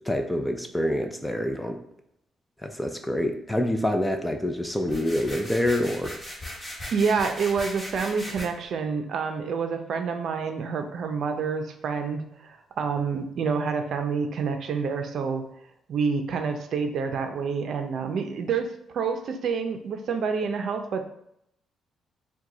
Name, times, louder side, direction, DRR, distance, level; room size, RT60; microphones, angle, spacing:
voice 1, 0.1-1.8 2.6-6.2, left 1 dB, 5° left, 5 dB, 0.5 m, -26 dB
sound 1, 4.8-8.5, left 1 dB, 25° left, 1.3 m, -38 dB
voice 2, 6.9-15.4 15.9-21.1, right 5 dB, 65° right, 6 dB, 0.5 m, -28 dB
4.6 x 2.2 x 3.9 m, 0.75 s
cardioid pair, 90°, 0 cm